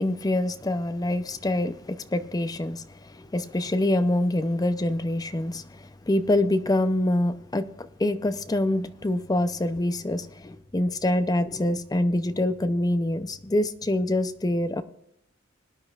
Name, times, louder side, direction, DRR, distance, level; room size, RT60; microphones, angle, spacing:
voice 1, 0.0-14.8, left 1 dB, 20° left, 0.5 m, -25 dB
21.0 x 10.5 x 2.4 m
head